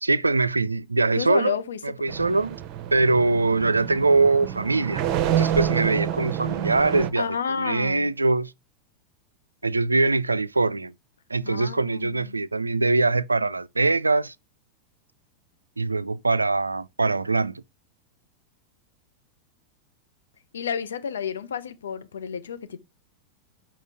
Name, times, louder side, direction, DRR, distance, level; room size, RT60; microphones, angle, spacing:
voice 1, 0.0-1.6 1.8-2.6 2.9-8.5 9.6-10.9 11.3-14.3 15.8-17.6, right 3 dB, 80° right, 0.3 m, -23 dB
voice 2, 1.2-1.8 7.2-8.1 11.4-12.4 20.5-22.8, left 7 dB, 65° left, 0.7 m, -30 dB
sound 1, 2.1-7.1, right 10 dB, 40° right, 0.8 m, -28 dB
6.6 x 5.7 x 3.5 m
figure-of-eight pair, 90°, 0 cm